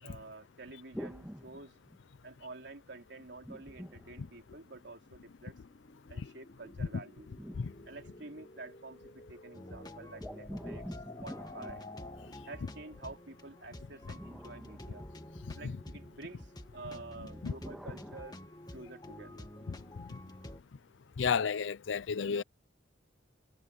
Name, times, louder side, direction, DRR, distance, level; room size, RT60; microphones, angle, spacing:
voice 1, 0.0-1.7 2.2-5.6 6.1-7.3 7.9-10.9 11.2-11.9 12.5-15.1 15.6-18.4 18.7-19.5, right 2 dB, 60° right, 3.9 m, -49 dB
sound 1, 0.9-2.4 3.4-5.0 6.6-8.7 10.2-12.7 13.8-15.7 17.2-18.2, equal, 5° right, 1.9 m, -48 dB
sound 2, 1.7-12.6, left 2 dB, 40° left, 3.7 m, -54 dB
sound 3, 9.5-20.6, left 1 dB, 20° left, 1.8 m, -49 dB
voice 2, 21.2-22.4, left 6 dB, 75° left, 0.5 m, -32 dB
head